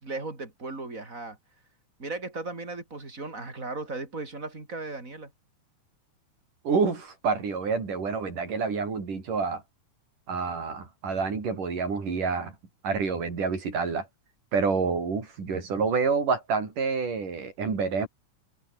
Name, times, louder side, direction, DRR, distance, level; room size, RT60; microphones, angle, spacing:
voice 1, 0.0-1.4 2.0-5.3, right 3 dB, 25° right, 5.2 m, -36 dB
voice 2, 6.6-9.6 10.3-12.5 12.8-14.1 14.5-18.1, right 5 dB, 85° right, 6.7 m, -28 dB
omnidirectional pair, 3.6 m